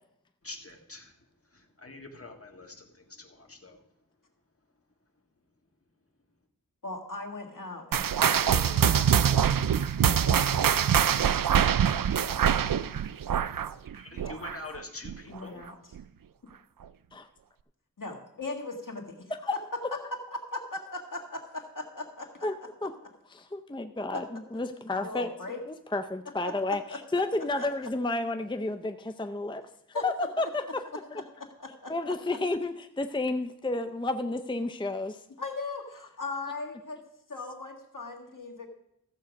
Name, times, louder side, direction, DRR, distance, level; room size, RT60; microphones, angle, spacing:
voice 1, 0.4-1.1 1.5-3.8 13.9-15.6, left 2 dB, 45° left, 3 dB, 1.7 m, -45 dB
voice 2, 6.8-9.4 10.2-11.8 15.3-15.8 18.0-19.6 20.3-22.5 24.1-24.2 25.0-25.6 26.7-27.0 27.6-27.7 29.9-30.0 31.4-31.9 32.3-32.4 35.4-37.0 37.3-38.7, left 3 dB, 70° left, 2 dB, 1.8 m, -39 dB
sound 1, 7.9-14.8 15.0-15.4 16.0-16.1 16.8-16.9, right 8 dB, 80° right, 0.5 m, -24 dB
voice 3, 22.4-22.9 23.3-25.3 25.7-30.8 31.1-31.2 31.9-35.2, left 2 dB, 15° left, 8 dB, 0.5 m, -31 dB
14.5 x 7.6 x 5.2 m, 0.82 s
wide cardioid pair, 60°, 33 cm